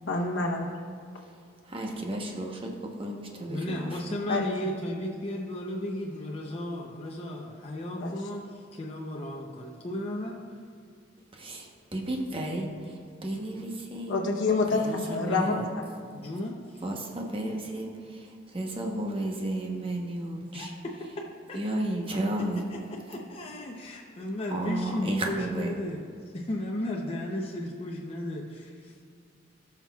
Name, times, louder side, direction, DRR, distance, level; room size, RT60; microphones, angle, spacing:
voice 1, 0.1-0.7 4.3-4.5 8.0-8.1 14.1-15.5, left 3 dB, 85° left, -2 dB, 0.9 m, -27 dB
voice 2, 1.6-4.2 11.3-14.2 14.7-15.7 16.8-20.7 21.5-22.6 24.5-25.7, right 1 dB, 30° right, 1 dB, 1.0 m, -33 dB
voice 3, 3.5-10.4 14.7-15.6 16.1-16.8 20.5-20.7 21.5-21.6 23.1-26.0 26.3-28.9, left 1 dB, 30° left, -2 dB, 0.6 m, -34 dB
17.5 x 5.9 x 2.3 m, 2.3 s
head